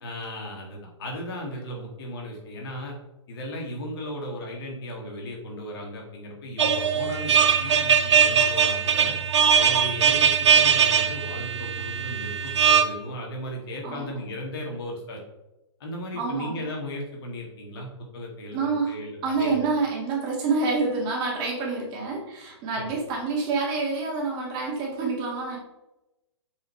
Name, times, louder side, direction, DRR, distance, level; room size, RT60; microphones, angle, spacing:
voice 1, 0.0-3.0 3.3-9.2 9.5-15.2 15.8-19.6 22.8-22.9, equal, 50° left, 0 dB, 2.2 m, -36 dB
sound 1, 6.6-12.8, right 7 dB, 70° right, 0.7 m, -21 dB
voice 2, 16.1-16.6 18.5-19.0 19.2-25.6, right 4 dB, 30° right, -2 dB, 2.0 m, -27 dB
7.2 x 4.8 x 3.2 m, 0.95 s
hypercardioid pair, 135°, 15 cm